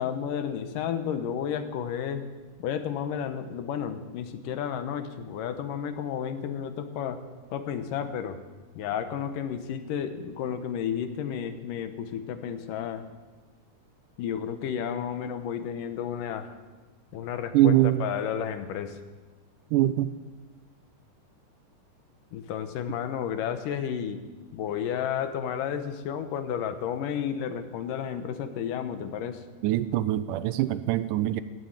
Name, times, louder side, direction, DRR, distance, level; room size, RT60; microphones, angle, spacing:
voice 1, 0.0-2.3 2.6-7.2 7.5-8.4 8.8-13.0 14.2-16.5 17.1-19.0 22.3-24.2 24.5-29.4, left 8 dB, 80° left, 9 dB, 2.6 m, -32 dB
voice 2, 17.5-18.1 19.7-20.1 29.6-31.4, right 13 dB, 80° right, 14 dB, 2.1 m, -23 dB
16.5 x 9.4 x 8.8 m, 1.3 s
omnidirectional pair, 3.8 m